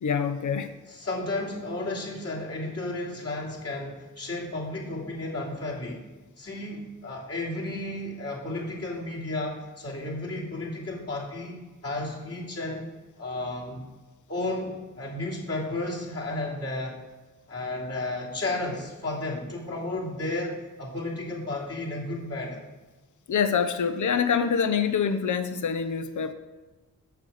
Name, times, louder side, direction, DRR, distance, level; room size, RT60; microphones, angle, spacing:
voice 1, 0.0-0.7 23.3-26.3, left 6 dB, 65° left, 9 dB, 0.7 m, -25 dB
voice 2, 0.9-6.0 6.4-12.8 13.2-13.8 14.3-17.0 17.5-22.6, left 2 dB, 45° left, -5 dB, 3.1 m, -33 dB
6.9 x 5.0 x 7.0 m, 1.2 s
cardioid pair, 50°, 33 cm